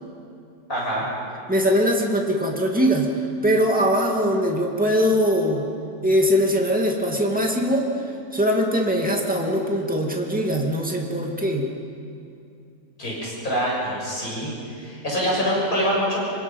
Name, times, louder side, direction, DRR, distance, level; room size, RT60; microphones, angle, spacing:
voice 1, 0.7-1.1 13.0-14.5 14.8-16.3, equal, 50° left, -4 dB, 7.8 m, -25 dB
voice 2, 1.5-3.2 3.4-5.7 6.0-8.0 8.3-11.7, equal, 5° right, 0 dB, 2.4 m, -21 dB
26.5 x 25.0 x 5.5 m, 2.4 s
omnidirectional pair, 1.8 m